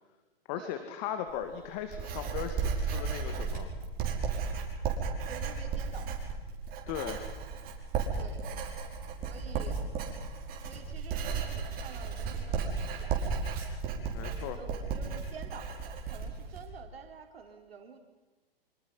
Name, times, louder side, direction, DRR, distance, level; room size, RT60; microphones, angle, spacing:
voice 1, 0.5-3.7 6.9-7.2 14.1-14.6, left 9 dB, 45° left, 8 dB, 2.3 m, -37 dB
Writing, 1.3-16.7, right 5 dB, 30° right, 5.6 m, -34 dB
voice 2, 5.2-6.1 8.1-8.4 9.2-9.8 10.6-13.4 14.4-18.0, right 5 dB, 80° right, 3 dB, 4.3 m, -49 dB
26.0 x 26.0 x 5.8 m, 1.1 s
hypercardioid pair, 120°, 30 cm